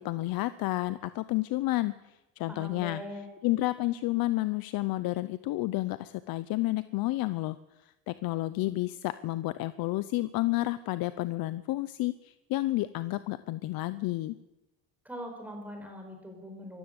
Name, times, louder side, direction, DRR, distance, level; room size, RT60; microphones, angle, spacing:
voice 1, 0.0-3.0 3.4-7.6 8.1-14.4, left 18 dB, 60° left, 14 dB, 0.8 m, -30 dB
voice 2, 2.5-3.3 15.0-16.8, equal, 5° right, 3 dB, 4.6 m, -41 dB
24.5 x 14.5 x 8.1 m, 0.94 s
cardioid pair, 160°, 39 cm